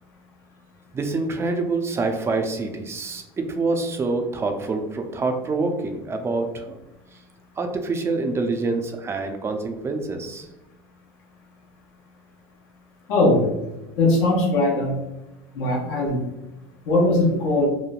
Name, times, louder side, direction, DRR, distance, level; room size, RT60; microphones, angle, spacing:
voice 1, 0.9-6.8 7.1-7.2 7.6-10.5, right 3 dB, 20° right, 5 dB, 0.4 m, -26 dB
voice 2, 13.1-13.5 14.0-14.9 15.5-16.2 16.8-17.7, left 2 dB, 75° left, -2 dB, 1.0 m, -20 dB
3.1 x 2.1 x 2.4 m, 0.97 s
supercardioid pair, 110°, 12 cm